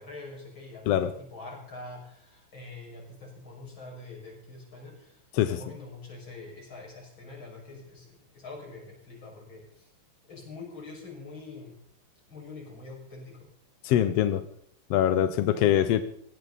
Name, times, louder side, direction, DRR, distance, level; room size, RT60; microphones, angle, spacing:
voice 1, 0.0-9.9 10.3-11.8 12.3-13.5, left 3 dB, 35° left, -2 dB, 6.8 m, -45 dB
voice 2, 13.8-14.4 14.9-16.0, left 11 dB, 75° left, 11 dB, 1.5 m, -23 dB
20.5 x 16.0 x 4.1 m, 0.66 s
omnidirectional pair, 3.7 m